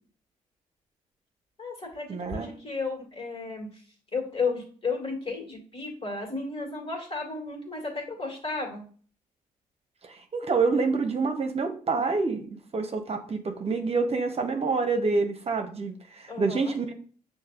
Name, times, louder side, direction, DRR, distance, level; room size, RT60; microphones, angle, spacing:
voice 1, 1.6-3.7 4.1-8.8 16.3-16.8, left 4 dB, 40° left, 1 dB, 2.0 m, -33 dB
voice 2, 2.1-2.5 10.0-16.9, right 4 dB, 45° right, 5 dB, 0.8 m, -27 dB
6.4 x 2.7 x 2.4 m, 0.44 s
supercardioid pair, 50°, 15 cm